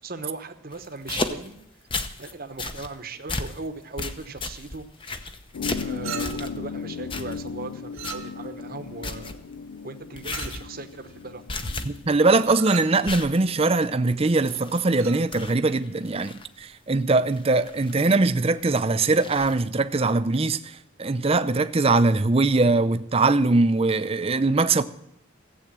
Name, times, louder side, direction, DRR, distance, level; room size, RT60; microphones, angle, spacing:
voice 1, 0.0-1.6 2.2-5.3 5.8-9.4 9.8-11.7, right 3 dB, 45° right, 1.0 m, -38 dB
sound 1, 0.7-2.3 2.6-2.9 3.3-3.6 4.0-6.6 7.1-7.6 8.0-8.3 8.6-8.7 9.0-9.4 10.2-10.7 11.0-11.2 11.5-12.2 12.5-12.6 13.1-15.0 15.3-16.5 17.3-18.3 19.0-19.6, left 3 dB, 25° left, 0.8 m, -34 dB
sound 2, 5.5-12.5, left 5 dB, 75° left, 0.4 m, -36 dB
Chink clink, 6.0-6.6 7.9-8.6 10.3-10.7 12.4-13.0 14.9-15.3, right 9 dB, 80° right, 1.6 m, -38 dB
voice 2, 11.8-24.8, right 3 dB, 25° right, 0.5 m, -22 dB
15.5 x 8.1 x 7.4 m
head